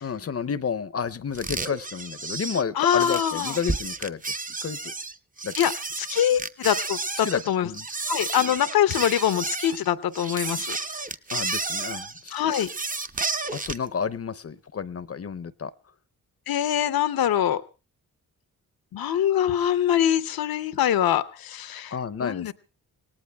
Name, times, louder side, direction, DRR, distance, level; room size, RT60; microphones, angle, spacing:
voice 1, 0.0-4.2 4.6-4.9 5.4-5.5 7.2-7.9 11.3-12.4 13.5-15.7 21.9-22.5, left 6 dB, 40° left, 14 dB, 0.7 m, -31 dB
sound 1, 1.3-13.9, right 3 dB, 25° right, 0.7 m, -32 dB
voice 2, 2.8-3.6 5.6-7.7 8.1-10.8 12.3-12.7 16.5-17.6 18.9-22.5, left 10 dB, 75° left, 12 dB, 0.7 m, -24 dB
26.0 x 18.0 x 2.3 m, 0.33 s
cardioid pair, 50°, 36 cm